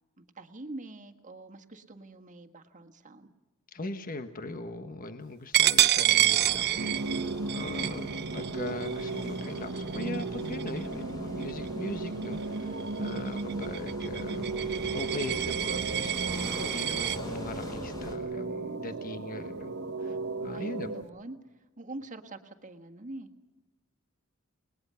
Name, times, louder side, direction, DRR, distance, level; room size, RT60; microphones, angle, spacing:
voice 1, 0.2-3.3 18.8-18.9 20.5-21.4 21.8-23.3, right 2 dB, 40° right, 5 dB, 1.6 m, -44 dB
voice 2, 3.7-14.4 14.9-19.7 20.0-20.9, left 2 dB, 45° left, 8 dB, 1.2 m, -40 dB
Coin (dropping), 5.5-10.9 11.4-11.7 12.1-17.2, right 13 dB, 55° right, 0.6 m, -29 dB
sound 1, 6.0-18.2, equal, 20° left, 4.4 m, -43 dB
sound 2, 6.8-21.0, right 3 dB, 75° right, 1.2 m, -35 dB
30.0 x 20.0 x 5.7 m, 1.1 s
head